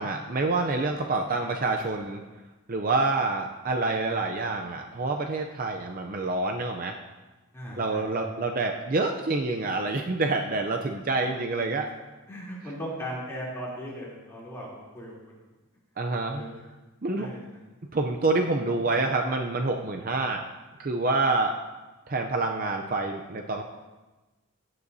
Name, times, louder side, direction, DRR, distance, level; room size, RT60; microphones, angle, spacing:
voice 1, 0.0-2.2 2.7-7.0 7.8-11.9 16.0-16.4 17.0-17.3 17.9-20.4 20.8-21.5 22.1-23.6, right 3 dB, 40° right, 3 dB, 0.5 m, -27 dB
voice 2, 0.9-1.4 7.5-8.3 11.2-11.3 12.3-15.4 16.2-16.6 17.1-17.4 22.7-23.1, equal, 10° left, -7 dB, 3.1 m, -39 dB
16.5 x 9.7 x 2.7 m, 1.2 s
head